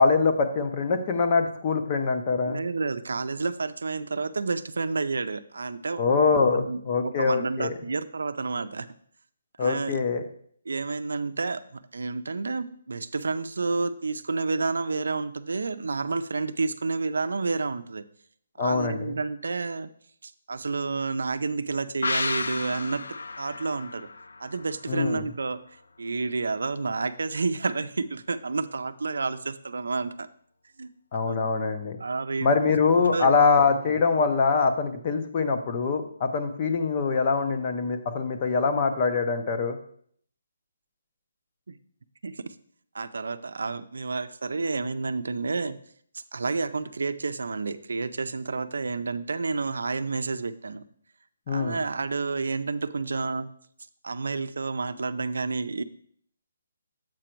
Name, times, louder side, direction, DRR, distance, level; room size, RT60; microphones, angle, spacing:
voice 1, 0.0-2.6 6.0-7.7 9.6-10.2 18.6-19.2 24.9-25.2 31.1-32.0 32.4-39.8 51.5-51.8, left 4 dB, 25° left, 6 dB, 0.6 m, -24 dB
voice 2, 2.4-6.0 6.3-8.9 9.6-10.0 10.7-18.0 18.6-19.9 20.2-23.0 23.4-24.1 24.4-25.6 26.0-30.3 30.8-31.4 32.0-32.5 33.1-33.4 41.7-41.8 42.2-42.5 42.9-45.8 46.1-50.8 51.5-53.5 54.0-55.8, right 4 dB, 80° right, 11 dB, 0.5 m, -30 dB
sound 1, 22.0-25.5 25.8-25.9, left 3 dB, 85° left, 0.4 m, -33 dB
7.6 x 5.1 x 4.5 m, 0.62 s
hypercardioid pair, 175°, 0 cm